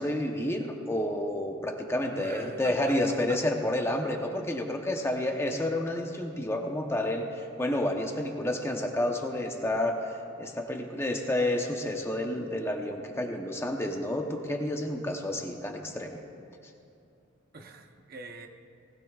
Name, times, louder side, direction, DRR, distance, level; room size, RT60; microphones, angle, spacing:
voice 1, 0.0-16.2, left 1 dB, 15° left, 2 dB, 0.8 m, -30 dB
voice 2, 2.1-3.0 17.5-18.5, right 3 dB, 50° right, 4 dB, 0.9 m, -44 dB
19.5 x 15.5 x 2.4 m, 2.6 s
head